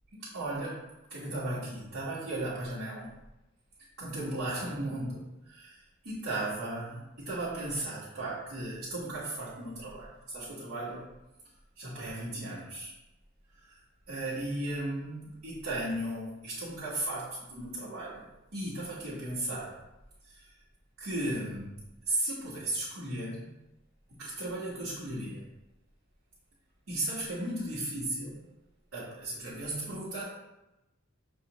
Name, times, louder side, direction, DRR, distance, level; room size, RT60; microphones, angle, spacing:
voice 1, 0.1-0.8 1.1-3.1 4.0-11.1 11.8-12.9 13.6-13.8 14.1-18.2 18.5-19.8 20.2-20.5 21.0-23.5 24.1-25.4 26.9-28.4 28.9-30.2, right 1 dB, 80° right, -11 dB, 1.4 m, -36 dB
6.6 x 2.5 x 2.9 m, 0.95 s
head